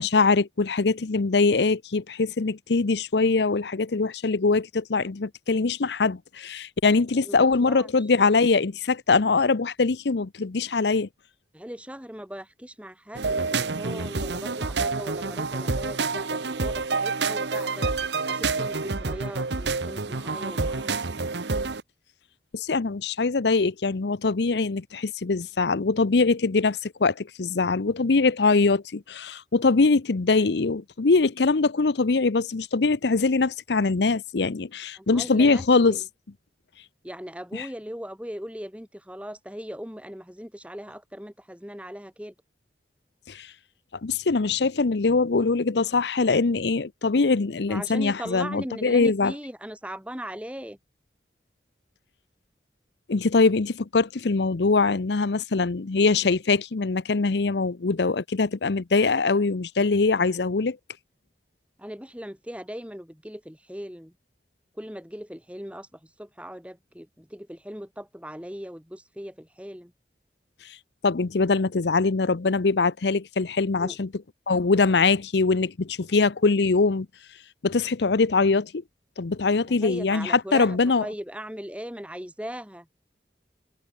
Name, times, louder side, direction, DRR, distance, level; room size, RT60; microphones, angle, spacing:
voice 1, 0.0-11.1 22.5-36.0 37.5-37.7 43.3-43.5 44.0-49.4 53.1-60.8 71.0-77.1 77.6-78.8 79.2-81.0, left 4 dB, 75° left, 0.7 m, -23 dB
voice 2, 7.2-8.1 11.5-21.0 35.0-36.0 37.0-42.3 47.7-50.8 61.8-64.1 64.8-69.9 73.8-74.0 79.7-83.0, equal, 5° right, 2.3 m, -39 dB
sound 1, 13.1-21.8, right 4 dB, 80° right, 1.2 m, -28 dB
head